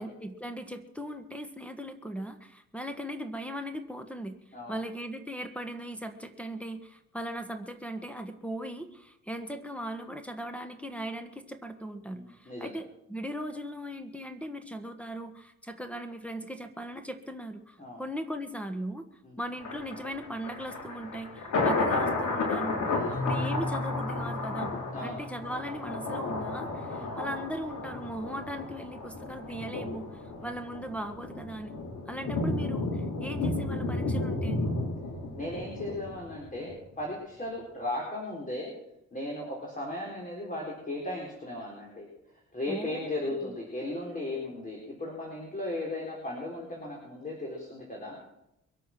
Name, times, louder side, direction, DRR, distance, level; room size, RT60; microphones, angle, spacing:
voice 1, 0.0-4.4 4.7-19.1 19.4-24.7 25.0-31.7 32.1-34.6 42.7-43.1 43.4-43.5, equal, 5° left, 8 dB, 1.5 m, -38 dB
voice 2, 12.1-12.8 17.8-18.0 19.2-19.4 21.5-21.8 22.9-23.2 24.9-25.2 26.9-27.1 30.4-30.6 35.4-38.7 39.1-42.1 42.5-48.3, left 1 dB, 25° left, -2 dB, 4.3 m, -36 dB
Thunder, 19.6-36.7 37.1-37.2, left 2 dB, 75° left, 4.1 m, -33 dB
Keyboard (musical), 23.1-26.8, left 2 dB, 55° left, 1.6 m, -37 dB
22.5 x 8.5 x 6.1 m, 0.84 s
cardioid pair, 90°, 30 cm